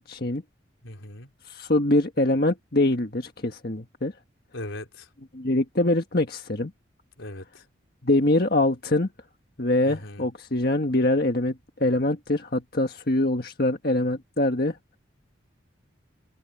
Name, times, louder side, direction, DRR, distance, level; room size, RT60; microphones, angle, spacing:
voice 1, 0.1-0.4 1.4-4.1 5.3-6.7 8.0-9.1 9.6-14.8, left 1 dB, 50° left, 1.6 m, -24 dB
voice 2, 0.8-1.3 4.5-5.1 7.2-7.6 9.9-10.3, left 1 dB, 85° left, 4.2 m, -39 dB
head